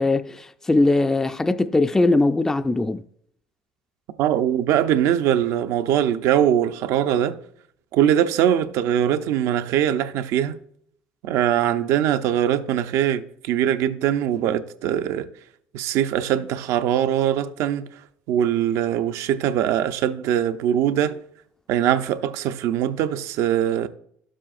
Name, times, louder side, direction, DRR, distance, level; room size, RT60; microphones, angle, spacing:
voice 1, 0.0-3.0, left 2 dB, 10° left, 0.3 m, -20 dB
voice 2, 4.2-7.4 7.9-10.6 11.2-15.3 15.7-18.0 18.3-21.2 21.7-23.9, right 10 dB, 70° right, 0.6 m, -22 dB
12.0 x 7.5 x 2.5 m
supercardioid pair, 100°, 5 cm